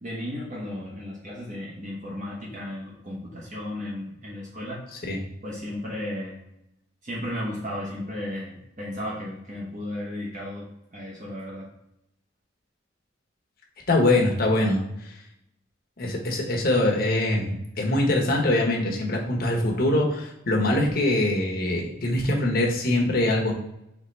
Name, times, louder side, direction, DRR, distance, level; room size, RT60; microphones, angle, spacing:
voice 1, 0.0-4.8 5.4-6.4 7.0-11.7, left 1 dB, 40° right, -5 dB, 1.0 m, -34 dB
voice 2, 13.9-15.1 16.0-23.5, left 1 dB, 50° left, -1 dB, 1.0 m, -23 dB
4.4 x 3.4 x 3.3 m, 0.83 s
head